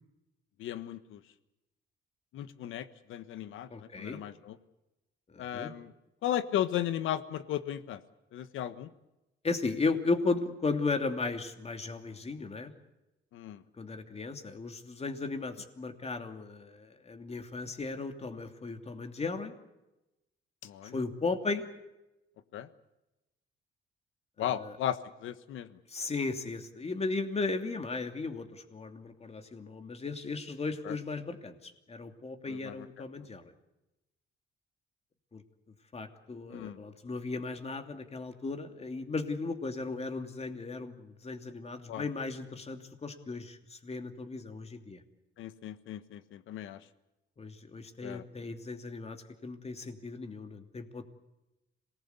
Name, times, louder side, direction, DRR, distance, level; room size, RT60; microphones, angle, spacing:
voice 1, 0.6-1.2 2.3-3.7 4.0-4.6 5.4-5.9 6.2-8.0 8.3-8.9 13.3-13.6 20.6-20.9 22.5-22.7 24.4-25.7 30.8-31.0 32.5-32.7 36.5-36.8 41.9-42.0 45.4-46.8 48.0-48.2, left 11 dB, 85° left, 12 dB, 1.4 m, -35 dB
voice 2, 3.7-4.2 5.3-5.7 9.4-12.7 13.8-19.5 20.8-21.6 24.4-24.7 25.9-33.5 35.3-35.4 35.9-45.0 47.4-51.0, left 3 dB, 30° left, 6 dB, 2.8 m, -36 dB
26.5 x 19.5 x 8.3 m, 0.97 s
cardioid pair, 90°, 20 cm